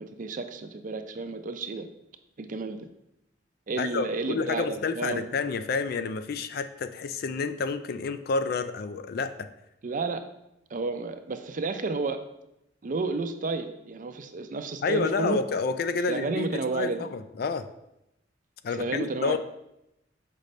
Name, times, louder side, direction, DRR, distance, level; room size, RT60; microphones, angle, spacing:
voice 1, 0.0-1.9 2.4-2.9 3.7-5.2 9.8-10.2 10.7-12.2 12.8-15.4 16.1-17.1 18.8-19.4, right 3 dB, 45° right, 8 dB, 0.5 m, -31 dB
voice 2, 3.8-9.5 14.8-17.7 18.6-19.4, left 4 dB, 60° left, 11 dB, 0.4 m, -29 dB
6.5 x 5.1 x 3.2 m, 0.86 s
head